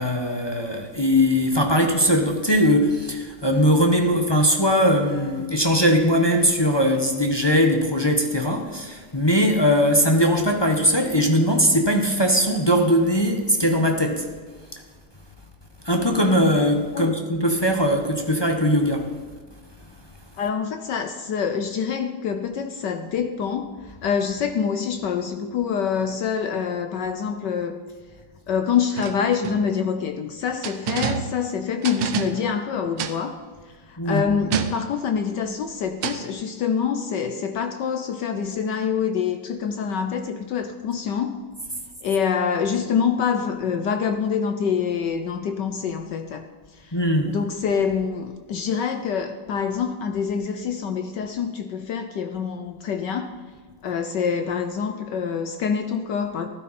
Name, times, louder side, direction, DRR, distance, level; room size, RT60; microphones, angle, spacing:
voice 1, 0.0-14.3 15.8-19.1 34.0-34.2 46.9-47.4, equal, 20° left, 2 dB, 0.7 m, -20 dB
voice 2, 20.4-27.8 28.5-41.4 42.0-47.0 47.3-53.3 53.8-56.5, left 7 dB, 65° left, 7 dB, 1.2 m, -26 dB
sound 1, 29.0-29.8 30.6-31.5 31.8-32.6 33.0-33.2 34.5-35.0 36.0-36.3, right 7 dB, 85° right, 1.7 m, -28 dB
14.5 x 12.5 x 4.2 m, 1.5 s
omnidirectional pair, 2.3 m